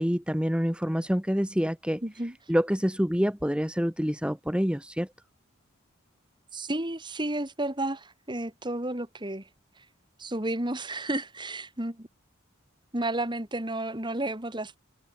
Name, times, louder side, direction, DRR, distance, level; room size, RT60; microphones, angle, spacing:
voice 1, 0.0-2.0 2.5-5.1, equal, 5° right, 1.9 m, -27 dB
voice 2, 2.0-2.3 6.5-9.5 10.2-12.1 12.9-14.8, right 1 dB, 20° right, 2.7 m, -32 dB
head